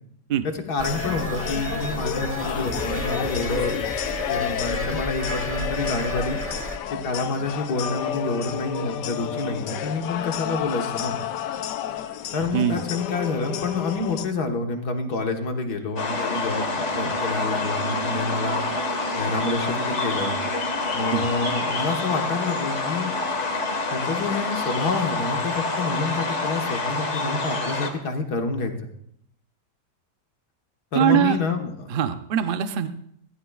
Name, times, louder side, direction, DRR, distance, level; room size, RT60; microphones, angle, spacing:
voice 1, 0.4-3.8 4.3-6.4 6.9-11.2 12.3-18.6 19.1-20.4 20.9-23.1 23.9-28.9 30.9-31.9, left 3 dB, 70° left, 4 dB, 1.9 m, -28 dB
sound 1, 0.8-14.3, left 9 dB, 85° left, 1.3 m, -30 dB
sound 2, 0.8-6.8, right 2 dB, 10° right, 0.8 m, -33 dB
voice 2, 12.5-12.8 21.1-21.3 30.9-31.4 31.9-32.9, right 9 dB, 55° right, 9 dB, 0.6 m, -22 dB
sound 3, 16.0-27.9, left 3 dB, 45° left, 1.8 m, -27 dB
21.5 x 15.5 x 2.4 m, 0.70 s
omnidirectional pair, 1.8 m